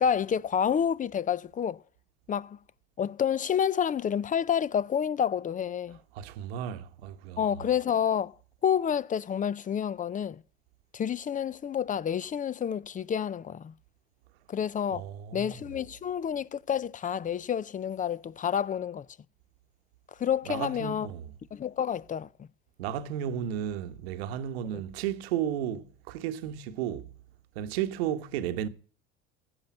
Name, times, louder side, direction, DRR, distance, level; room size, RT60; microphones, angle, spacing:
voice 1, 0.0-1.8 2.3-2.6 3.0-6.0 7.4-8.3 8.6-10.4 10.9-13.7 14.5-15.0 15.3-19.1 20.2-21.1 21.5-22.5, left 8 dB, 25° left, 0.5 m, -29 dB
voice 2, 6.1-7.4 14.9-15.6 20.5-21.3 22.8-27.1 27.5-28.7, right 10 dB, 85° right, 1.2 m, -33 dB
16.0 x 5.4 x 9.2 m
supercardioid pair, 85°, 30 cm